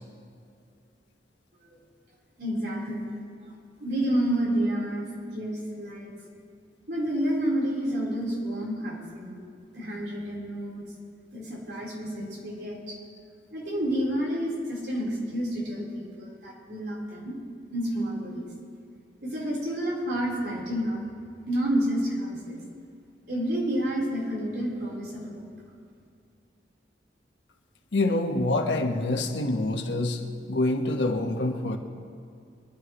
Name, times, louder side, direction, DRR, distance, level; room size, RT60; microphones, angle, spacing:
voice 1, 2.4-3.1 3.8-6.1 6.9-9.4 9.7-10.9 11.3-13.0 13.5-17.4 17.7-18.5 19.2-21.0 21.5-22.6 23.3-25.5, right 1 dB, 65° right, -4 dB, 4.2 m, -29 dB
voice 2, 27.9-31.8, left 2 dB, 85° left, 3 dB, 1.4 m, -26 dB
24.0 x 11.5 x 3.2 m, 2.4 s
head